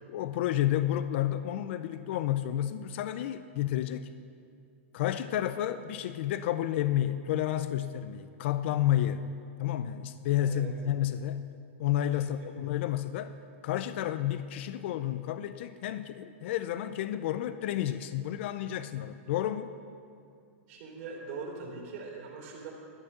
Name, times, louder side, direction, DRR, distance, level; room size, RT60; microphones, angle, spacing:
voice 1, 0.1-4.1 4.9-9.3 9.6-11.5 11.8-13.4 13.6-19.7, left 12 dB, 55° left, 12 dB, 0.5 m, -31 dB
voice 2, 20.7-22.7, right 4 dB, 55° right, -3 dB, 2.9 m, -41 dB
12.0 x 8.8 x 6.7 m, 2.4 s
hypercardioid pair, 145°, 7 cm